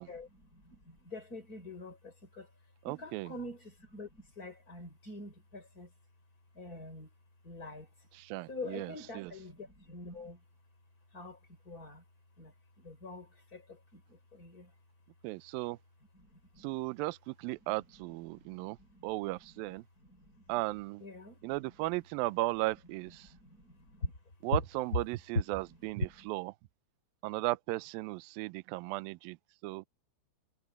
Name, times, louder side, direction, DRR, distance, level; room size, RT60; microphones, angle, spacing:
voice 1, 0.1-2.5 2.9-5.9 6.5-7.1 7.4-7.9 8.5-10.4 11.1-11.4 11.6-12.0 12.4-14.7 16.1-16.7 17.7-17.8 18.3-19.1 19.7-19.8 20.0-20.5 21.0-21.5 23.3-24.1 25.3-25.4 26.0-26.3, left 2 dB, 20° left, 4.8 m, -44 dB
voice 2, 2.9-3.3 8.1-9.3 15.2-15.8 16.6-18.8 19.0-19.8 20.5-21.0 21.4-23.3 24.4-26.5 27.2-29.4 29.6-29.9, right 20 dB, 80° right, 2.1 m, -36 dB
omnidirectional pair, 4.7 m